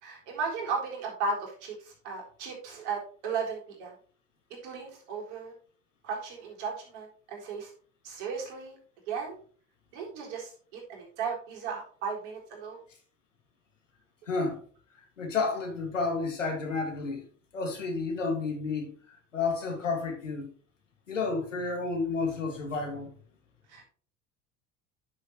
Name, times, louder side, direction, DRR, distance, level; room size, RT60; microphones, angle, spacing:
voice 1, 0.0-3.9 4.6-5.5 6.0-7.7 8.0-8.8 9.1-9.4 9.9-12.8 23.7-23.8, right 5 dB, 70° right, 3.9 m, -35 dB
voice 2, 14.3-14.6 15.2-17.2 17.5-20.5 21.1-23.1, left 4 dB, 90° left, 2.1 m, -31 dB
10.5 x 6.7 x 3.0 m
hypercardioid pair, 70°, 36 cm